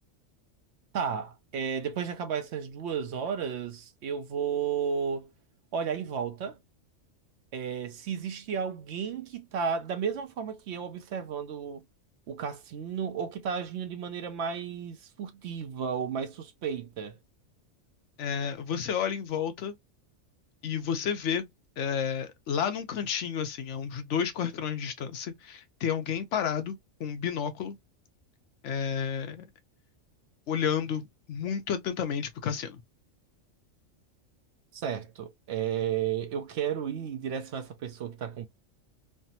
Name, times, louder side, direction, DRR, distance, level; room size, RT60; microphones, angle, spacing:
voice 1, 0.9-5.3 5.7-6.6 7.5-11.8 12.3-17.2 34.7-38.5, right 7 dB, 65° right, 0.8 m, -33 dB
voice 2, 18.2-19.8 20.6-21.5 21.8-27.8 28.6-29.5 30.5-32.8, left 7 dB, 75° left, 0.9 m, -31 dB
3.3 x 2.0 x 2.7 m
omnidirectional pair, 1.3 m